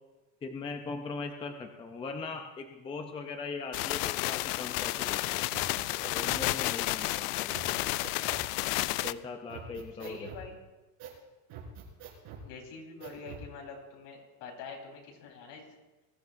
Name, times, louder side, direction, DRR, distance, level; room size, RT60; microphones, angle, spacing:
voice 1, 0.4-5.5 6.1-7.9 9.0-10.3, left 4 dB, 10° left, 4 dB, 0.5 m, -40 dB
sound 1, 3.7-9.1, left 19 dB, 75° left, 0.5 m, -31 dB
sound 2, 5.5-6.4 7.0-7.1 7.5-8.5 9.0-9.2 9.5-10.5 11.0-11.2 11.5-12.5 13.0-13.5, right 6 dB, 50° right, 4.5 m, -45 dB
voice 2, 10.0-10.6 12.4-15.8, left 4 dB, 60° left, 0 dB, 4.3 m, -45 dB
22.5 x 14.5 x 2.6 m, 1.1 s
cardioid pair, 155°, 46 cm